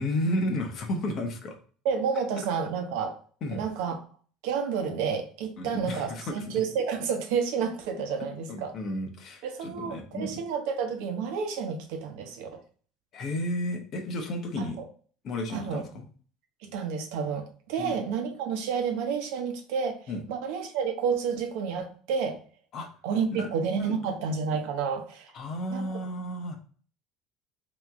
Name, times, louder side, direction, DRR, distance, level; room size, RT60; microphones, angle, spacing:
voice 1, 0.0-1.6 3.4-3.6 5.6-6.6 8.5-10.4 13.1-14.8 15.2-16.1 17.8-17.9 20.1-20.2 22.7-22.9 23.4-23.5 23.7-24.1 25.3-26.6, left 1 dB, 50° left, 4 dB, 0.9 m, -32 dB
voice 2, 1.8-3.2 3.5-4.0 4.4-8.7 9.4-12.5 14.6-14.8 15.5-15.8 16.6-22.4 23.0-25.3 25.7-25.9, right 6 dB, 80° right, 5 dB, 0.8 m, -30 dB
3.6 x 3.1 x 3.5 m, 0.43 s
supercardioid pair, 110°, 0 cm